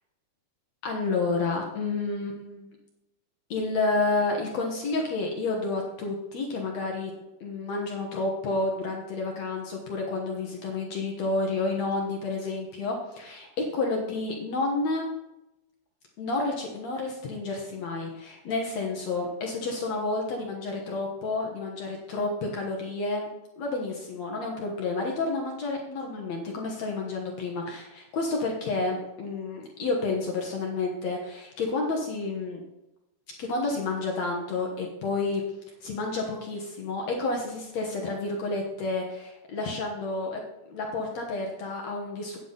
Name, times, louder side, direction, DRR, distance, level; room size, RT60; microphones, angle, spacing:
voice 1, 0.8-2.7 3.5-7.1 7.4-15.1 16.2-23.3 23.6-32.6 33.4-35.4 35.8-40.4 40.7-42.4, left 3 dB, 65° left, 0 dB, 1.8 m, -30 dB
9.3 x 9.0 x 4.0 m, 0.93 s
omnidirectional pair, 4.6 m